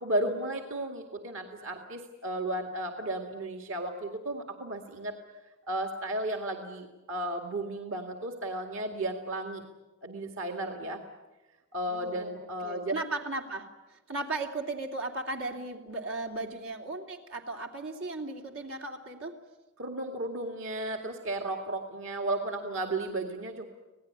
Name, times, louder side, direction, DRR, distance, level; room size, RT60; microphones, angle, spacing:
voice 1, 0.0-5.2 5.7-9.6 10.0-11.0 11.7-12.9 19.8-23.7, right 1 dB, 65° right, 4 dB, 2.2 m, -34 dB
voice 2, 11.9-19.4, right 2 dB, 85° right, 2 dB, 2.9 m, -36 dB
26.5 x 18.5 x 9.5 m, 1.1 s
head